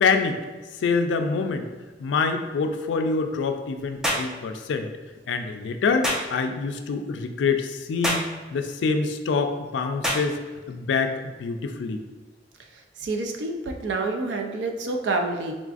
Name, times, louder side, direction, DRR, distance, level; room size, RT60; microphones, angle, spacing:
voice 1, 0.0-0.4 0.8-1.7 2.0-4.9 5.3-10.4 10.7-12.0, left 4 dB, 80° left, 7 dB, 0.3 m, -25 dB
sound 1, 4.0-4.3 6.0-6.3 8.0-8.3 10.0-10.3, equal, 5° right, 0.4 m, -25 dB
voice 2, 13.0-15.5, right 3 dB, 70° right, 3 dB, 0.4 m, -28 dB
3.7 x 2.4 x 2.4 m, 1.3 s
head